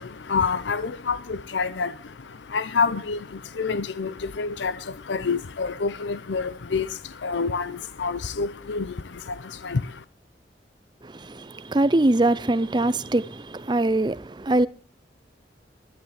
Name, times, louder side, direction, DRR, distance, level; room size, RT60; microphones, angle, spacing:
voice 1, 0.0-10.0, left 5 dB, 90° left, 0.6 m, -28 dB
voice 2, 11.0-14.7, right 2 dB, 25° right, 0.6 m, -23 dB
11.5 x 11.5 x 6.5 m
head